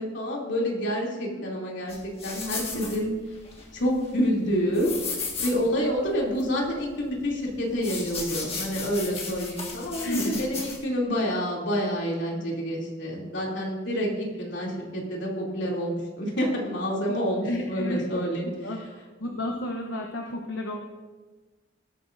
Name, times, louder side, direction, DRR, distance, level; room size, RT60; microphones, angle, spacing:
voice 1, 0.0-3.1 3.7-4.9 5.4-18.5, equal, 70° left, -3 dB, 2.9 m, -28 dB
sound 1, 1.9-10.8, left 4 dB, 30° left, 1.8 m, -35 dB
voice 2, 7.7-8.2 10.0-10.4 17.4-18.0 18.6-18.8 19.2-20.8, left 1 dB, 90° left, 1 dB, 1.0 m, -32 dB
18.5 x 9.0 x 2.6 m, 1.3 s
head